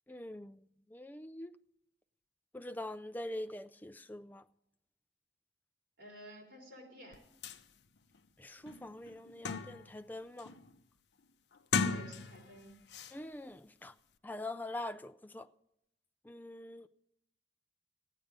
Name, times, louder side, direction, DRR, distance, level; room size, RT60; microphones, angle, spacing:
voice 1, 0.1-0.6 0.9-1.5 2.5-4.4 8.4-10.5 13.1-13.9 14.2-15.5 16.2-16.9, left 1 dB, 10° left, 0.3 m, -44 dB
voice 2, 6.0-7.2 11.8-12.8, equal, 70° right, 3.7 m, -52 dB
sound 1, 7.1-7.2 7.4-7.6 8.1-8.2 8.7-10.0 10.4-10.7 11.6-12.6 12.9-13.1, left 5 dB, 70° left, 0.6 m, -36 dB
13.5 x 9.3 x 5.1 m
head